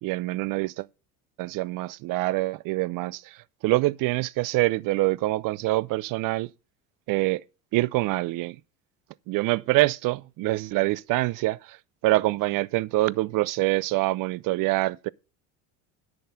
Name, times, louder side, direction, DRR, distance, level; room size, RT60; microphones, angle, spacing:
voice 1, 0.0-0.9 1.4-3.4 3.6-6.5 7.1-7.4 7.7-8.6 9.3-11.8 12.0-15.1, right 19 dB, 50° right, 0.6 m, -25 dB
10.5 x 6.5 x 5.6 m
hypercardioid pair, 80°, 42 cm